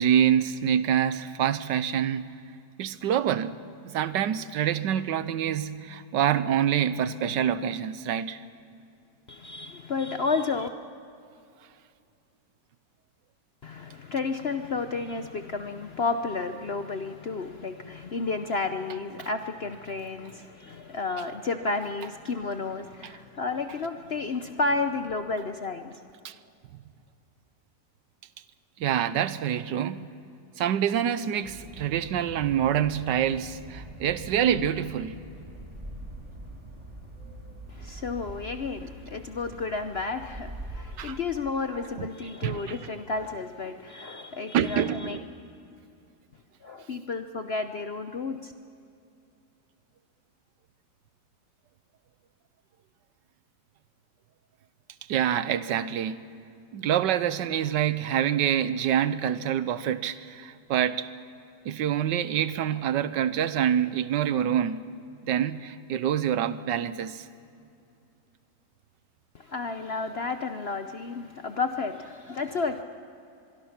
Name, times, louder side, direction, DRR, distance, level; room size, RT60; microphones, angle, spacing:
voice 1, 0.0-2.3 2.8-3.6 3.8-8.4 26.2-26.3 28.8-30.1 30.6-35.1 41.0-41.2 42.0-42.1 42.4-42.8 44.5-45.2 55.1-56.2 56.7-61.1 61.6-64.8 65.2-67.2, right 9 dB, 80° right, 14 dB, 1.4 m, -26 dB
voice 2, 9.3-10.7 13.6-26.0 37.7-45.2 46.6-48.5 69.3-72.8, left 4 dB, 55° left, 8 dB, 0.7 m, -31 dB
sound 1, 31.4-41.2, right 1 dB, 25° right, 3.8 m, -43 dB
25.0 x 22.5 x 5.9 m, 2.6 s
omnidirectional pair, 1.9 m